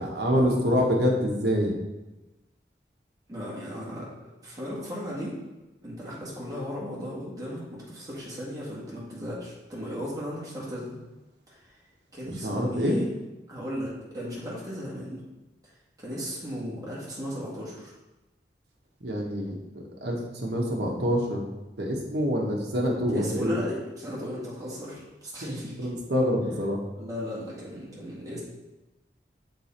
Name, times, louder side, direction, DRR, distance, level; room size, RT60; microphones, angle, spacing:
voice 1, 0.0-1.7 12.4-13.0 19.0-21.5 21.8-23.6 25.4-26.8, equal, 65° right, 0 dB, 1.2 m, -26 dB
voice 2, 3.3-4.1 4.3-5.3 5.8-11.0 11.5-11.7 12.1-13.1 13.5-15.3 16.0-17.9 23.1-25.9 26.9-28.4, equal, 20° right, -7 dB, 1.7 m, -36 dB
6.8 x 3.8 x 4.3 m, 1.1 s
head